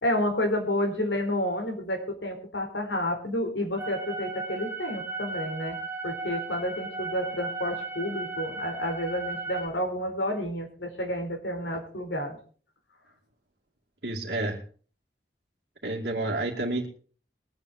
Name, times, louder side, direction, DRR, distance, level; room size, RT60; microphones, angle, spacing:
voice 1, 0.0-5.8 6.0-12.4, left 1 dB, 85° left, 3 dB, 4.2 m, -30 dB
sound 1, 3.8-9.7, right 3 dB, 10° right, 1.2 m, -36 dB
voice 2, 14.0-14.6 15.8-16.9, right 2 dB, 60° right, -6 dB, 2.4 m, -29 dB
22.0 x 8.9 x 4.3 m, 0.42 s
head